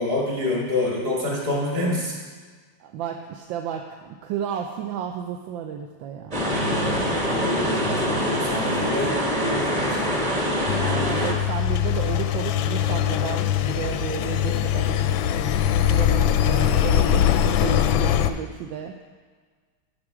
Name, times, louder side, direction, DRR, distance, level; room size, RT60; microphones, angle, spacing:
voice 1, 0.0-2.1 6.4-10.2, left 1 dB, 45° right, -4 dB, 2.8 m, -27 dB
voice 2, 2.8-6.4 6.8-8.2 10.1-10.3 10.7-15.2 15.9-19.0, right 8 dB, 75° right, 3 dB, 1.3 m, -33 dB
sound 1, 6.3-11.3, equal, 20° right, 1.3 m, -24 dB
Engine, 10.7-18.3, left 10 dB, 75° left, 1.2 m, -22 dB
12.5 x 6.4 x 4.9 m, 1.5 s
omnidirectional pair, 2.4 m